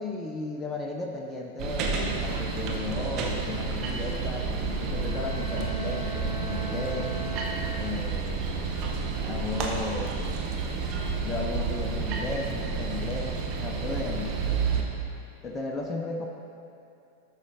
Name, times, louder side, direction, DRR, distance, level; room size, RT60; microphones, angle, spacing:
voice 1, 0.0-7.1 7.7-8.5 9.2-10.3 11.2-14.6 15.4-16.3, left 3 dB, 20° left, 1 dB, 0.5 m, -35 dB
sound 1, 1.6-14.8, right 4 dB, 40° right, 0.8 m, -30 dB
Bowed string instrument, 4.8-8.3, right 3 dB, 90° right, 0.9 m, -40 dB
11.5 x 4.8 x 2.6 m, 2.6 s
figure-of-eight pair, 90°, 0 cm